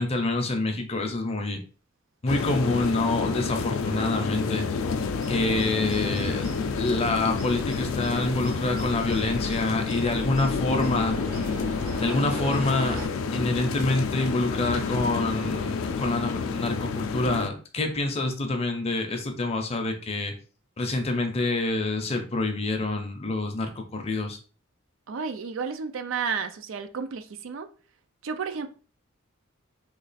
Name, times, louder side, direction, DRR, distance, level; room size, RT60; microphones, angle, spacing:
voice 1, 0.0-1.6 2.2-4.8 5.3-6.5 6.7-11.2 12.0-13.0 13.3-20.3 20.8-24.4, left 2 dB, 30° left, 0.6 m, -27 dB
sound 1, 2.3-17.5, left 5 dB, 75° left, 0.4 m, -29 dB
sound 2, 4.9-13.1, right 1 dB, 45° right, 0.8 m, -39 dB
voice 2, 25.1-27.7 28.2-28.7, right 5 dB, 70° right, 0.4 m, -32 dB
3.1 x 2.4 x 4.0 m
head